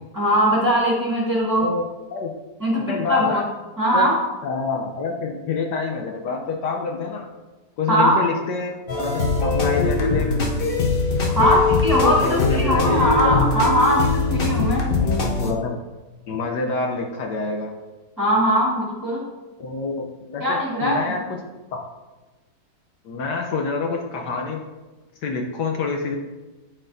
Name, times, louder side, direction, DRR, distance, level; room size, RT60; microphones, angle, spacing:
voice 1, 0.1-1.7 2.6-3.4 3.8-4.2 7.9-8.2 11.3-11.6 11.8-14.8 18.2-19.2 20.4-21.0, equal, 10° right, -5 dB, 1.6 m, -20 dB
voice 2, 2.9-3.5 3.9-4.1 4.4-7.3 7.8-10.3 11.4-11.6 12.0-13.5 15.0-15.8 16.3-17.7 19.6-21.2 23.0-24.6 25.2-26.2, left 4 dB, 70° left, 1 dB, 1.3 m, -27 dB
sound 1, 8.9-15.5, left 3 dB, 50° left, 0.6 m, -21 dB
11.5 x 4.3 x 2.6 m, 1.2 s
omnidirectional pair, 2.0 m